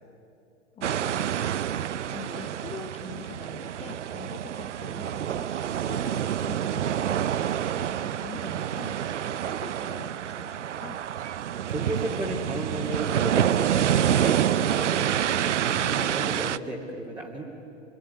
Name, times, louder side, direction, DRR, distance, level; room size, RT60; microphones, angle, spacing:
voice 1, 0.7-7.3 7.6-11.0, left 6 dB, 15° left, 9 dB, 1.4 m, -44 dB
sound 1, 0.8-16.6, right 10 dB, 70° right, 0.7 m, -27 dB
voice 2, 11.7-15.1 15.4-17.4, right 1 dB, 10° right, -3 dB, 3.0 m, -34 dB
27.0 x 22.5 x 9.5 m, 2.7 s
figure-of-eight pair, 100°, 37 cm